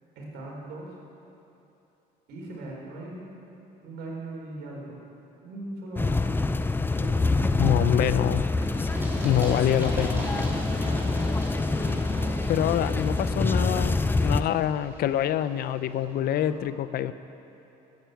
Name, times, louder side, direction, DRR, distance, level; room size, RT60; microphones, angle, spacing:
voice 1, 0.2-0.9 2.3-3.3 3.8-5.0 5.4-6.4 6.9-8.3 9.3-9.5 9.8-9.9 10.8-11.2 11.6-12.4 16.0-16.5, right 2 dB, 75° right, -2 dB, 4.0 m, -40 dB
sound 1, 6.0-14.4, left 3 dB, 10° left, 0.5 m, -26 dB
voice 2, 7.6-8.4 9.2-10.2 12.5-17.1, left 11 dB, 65° left, 13 dB, 0.6 m, -25 dB
Run, 8.6-16.2, right 1 dB, 15° right, 3.5 m, -39 dB
14.0 x 9.4 x 7.9 m, 3.0 s
cardioid pair, 110°, 17 cm